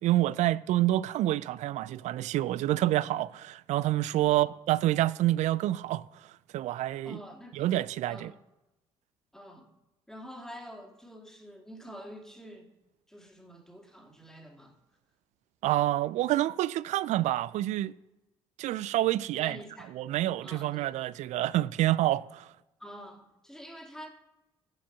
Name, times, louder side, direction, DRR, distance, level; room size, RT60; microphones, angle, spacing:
voice 1, 0.0-6.1 6.5-7.2 7.5-8.3 15.6-17.9 18.6-19.6 20.0-22.5, right 15 dB, 65° right, 0.4 m, -27 dB
voice 2, 7.0-7.7 8.1-8.3 9.3-9.7 10.1-12.7 13.1-14.7 19.4-19.9 20.4-20.9 22.8-24.1, equal, 5° left, 2.5 m, -47 dB
10.5 x 5.1 x 6.1 m
hypercardioid pair, 55°, 13 cm